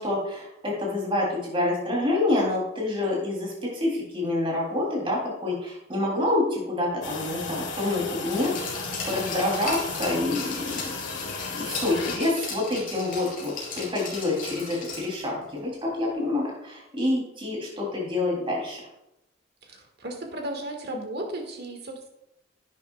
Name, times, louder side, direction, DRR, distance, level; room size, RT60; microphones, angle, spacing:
voice 1, 0.0-8.5 9.0-10.9 11.5-18.8, left 2 dB, 30° right, -2 dB, 3.3 m, -27 dB
sound 1, 7.0-12.2, left 4 dB, 80° left, 1.4 m, -35 dB
Glass, 8.3-15.2 15.6-15.7, left 4 dB, 50° left, 3.8 m, -36 dB
voice 2, 19.6-22.1, right 1 dB, 60° right, 2 dB, 1.8 m, -35 dB
11.0 x 9.2 x 2.4 m, 0.87 s
head